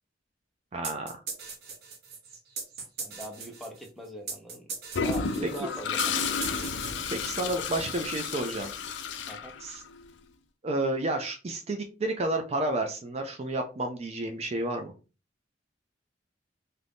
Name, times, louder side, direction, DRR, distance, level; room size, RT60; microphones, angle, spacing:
voice 1, 0.7-1.2 5.6-5.7 7.1-8.7 9.6-9.8 10.6-14.9, right 2 dB, 35° right, 4 dB, 0.4 m, -31 dB
sound 1, 0.8-7.5, right 5 dB, 60° right, 0.8 m, -40 dB
voice 2, 3.0-4.7 5.0-6.3 9.3-9.5, equal, ahead, 0 dB, 0.7 m, -41 dB
Toilet flush, 4.9-10.0, left 5 dB, 70° left, 0.4 m, -32 dB
2.7 x 2.5 x 3.4 m, 0.32 s
head